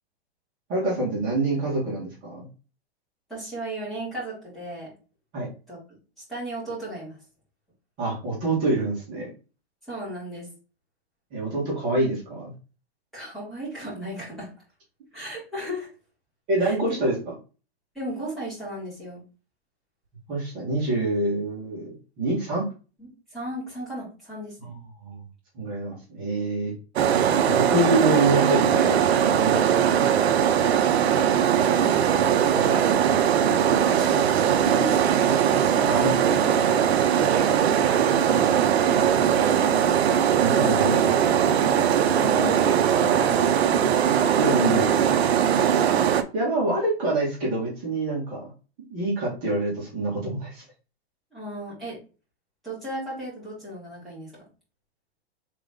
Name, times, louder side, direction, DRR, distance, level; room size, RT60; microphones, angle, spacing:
voice 1, 0.7-2.5 5.3-5.5 8.0-9.3 11.3-12.5 16.5-17.1 20.3-22.7 24.6-24.7 25.0-25.2 25.5-26.7 27.4-29.0 29.3-29.6 32.5-33.0 35.9-36.7 40.4-41.1 44.4-44.9 46.3-48.5 48.9-50.6, right 2 dB, 25° right, -7 dB, 1.8 m, -26 dB
voice 2, 3.3-4.9 5.7-5.8 6.3-7.2 9.9-10.5 13.1-14.5 15.1-15.9 16.6-17.0 17.9-19.2 23.0-24.7 29.5-29.8 31.3-32.1 33.7-35.2 38.1-39.8 42.1-43.8 51.3-52.0 52.6-54.4, right 1 dB, ahead, -10 dB, 2.6 m, -35 dB
sound 1, 27.0-46.2, right 9 dB, 70° right, 0.7 m, -20 dB
4.0 x 3.7 x 3.6 m, 0.35 s
hypercardioid pair, 160°, 33 cm